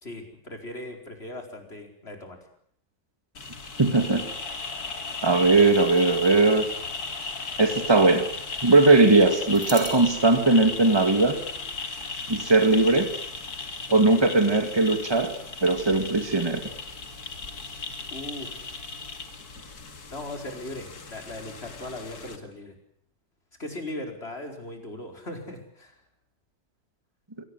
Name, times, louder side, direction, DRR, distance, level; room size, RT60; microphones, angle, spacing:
voice 1, 0.0-2.4 18.1-18.7 20.1-22.7 23.6-25.9, left 1 dB, 35° left, 4 dB, 4.9 m, -38 dB
sound 1, 3.3-22.4, left 4 dB, 60° left, 2.7 m, -36 dB
voice 2, 3.8-4.2 5.2-6.7 7.6-8.3 8.6-11.4 12.3-13.1 13.9-15.3 15.6-16.6, right 3 dB, 15° right, 7 dB, 2.3 m, -19 dB
sound 2, 7.0-7.9 8.2-8.3 9.5-11.7, right 2 dB, 35° right, 7.1 m, -41 dB
25.0 x 18.0 x 9.7 m, 0.66 s
omnidirectional pair, 1.8 m